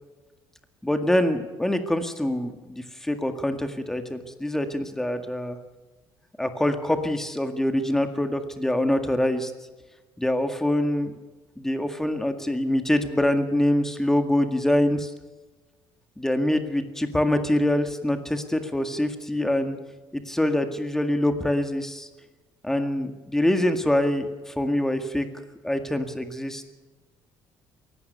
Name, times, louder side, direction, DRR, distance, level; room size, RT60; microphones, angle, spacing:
voice 1, 0.8-5.6 6.4-9.5 10.2-11.1 11.6-15.1 16.2-19.8 20.1-22.1 22.6-25.3 25.6-26.7, left 1 dB, 5° left, 7 dB, 1.9 m, -25 dB
23.0 x 18.0 x 6.8 m, 1.2 s
cardioid pair, 150°, 8 cm